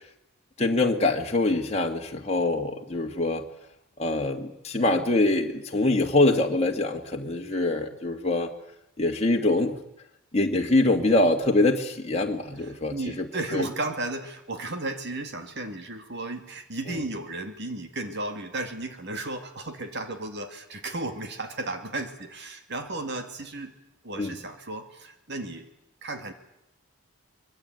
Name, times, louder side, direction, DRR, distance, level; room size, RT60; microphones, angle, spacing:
voice 1, 0.6-3.4 4.0-8.5 9.0-9.8 10.3-13.3 13.5-13.7 16.9-17.0 24.2-24.3, left 2 dB, 30° left, 1 dB, 2.0 m, -24 dB
voice 2, 12.9-23.7 24.0-25.7 26.0-26.3, right 2 dB, 50° right, 7 dB, 2.4 m, -34 dB
24.5 x 22.0 x 9.2 m, 0.83 s
head